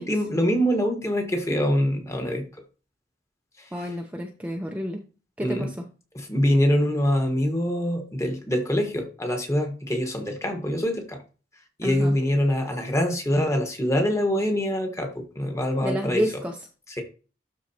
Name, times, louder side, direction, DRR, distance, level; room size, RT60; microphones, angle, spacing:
voice 1, 0.0-2.4 3.6-3.7 5.4-5.7 6.2-11.2 11.8-16.2, equal, 15° left, 3 dB, 1.6 m, -24 dB
voice 2, 3.7-5.0 5.4-5.8 11.8-12.2 15.8-16.6, equal, 10° right, 1 dB, 0.8 m, -29 dB
12.5 x 4.5 x 2.9 m, 0.35 s
head